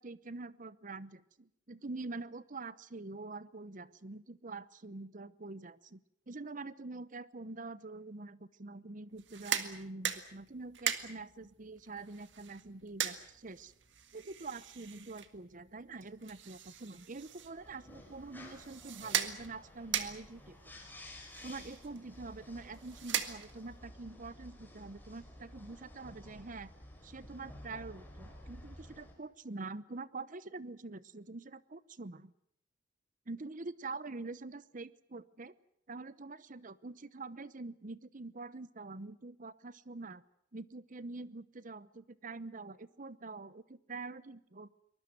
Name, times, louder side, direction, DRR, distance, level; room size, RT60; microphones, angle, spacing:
voice 1, 0.0-6.0 6.3-13.7 14.1-20.7 21.4-26.7 27.0-32.3 33.3-35.5 35.9-40.2 40.5-44.8, right 3 dB, 45° right, 17 dB, 0.8 m, -45 dB
sound 1, 9.1-23.8, right 9 dB, 70° right, 1.8 m, -41 dB
sound 2, 17.2-29.1, left 1 dB, 10° left, 5.2 m, -53 dB
23.5 x 20.5 x 7.9 m, 0.72 s
head